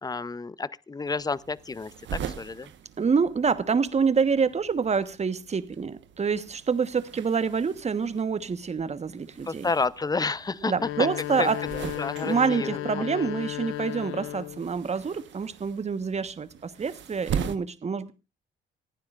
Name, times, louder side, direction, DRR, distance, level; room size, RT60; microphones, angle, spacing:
voice 1, 0.0-2.7 9.5-11.1 11.4-13.0, left 4 dB, 20° left, 0.7 m, -30 dB
sound 1, 1.0-17.6, right 8 dB, 70° right, 1.3 m, -41 dB
voice 2, 3.0-9.7 10.7-11.6 12.2-18.1, right 5 dB, 35° right, 1.2 m, -27 dB
sound 2, 10.7-14.7, left 16 dB, 85° left, 0.9 m, -34 dB
27.0 x 9.6 x 2.5 m
cardioid pair, 90°, 20 cm